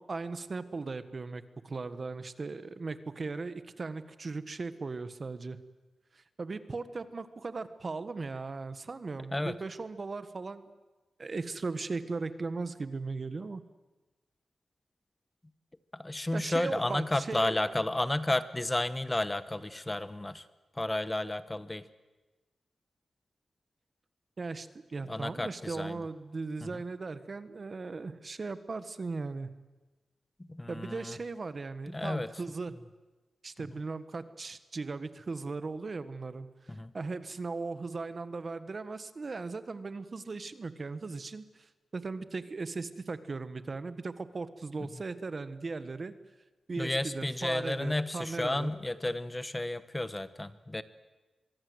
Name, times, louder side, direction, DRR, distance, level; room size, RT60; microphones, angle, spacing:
voice 1, 0.0-5.6 6.1-10.7 11.2-13.6 16.3-17.6 24.4-29.5 30.7-32.7 33.4-46.1 46.7-48.7, right 3 dB, 45° right, 12 dB, 1.5 m, -38 dB
voice 2, 16.0-20.4 20.8-21.8 25.1-26.0 30.5-31.2 31.9-32.3 36.7-36.9 46.8-50.8, left 1 dB, 20° left, 14 dB, 1.1 m, -32 dB
24.0 x 22.5 x 8.1 m, 1.1 s
cardioid pair, 70°, 0 cm